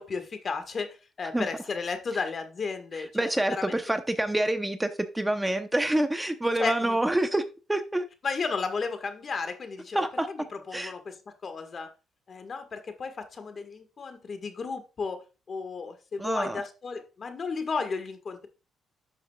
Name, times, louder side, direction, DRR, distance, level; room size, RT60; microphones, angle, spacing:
voice 1, 0.0-3.8 6.6-7.0 8.2-11.9 12.3-18.5, left 4 dB, 45° left, 1.5 m, -34 dB
voice 2, 3.1-4.9 5.1-7.4 7.7-8.0 9.9-10.3 10.7-10.9 16.2-16.6, right 1 dB, 10° right, 0.7 m, -27 dB
11.0 x 6.3 x 2.3 m
cardioid pair, 90°, 0 cm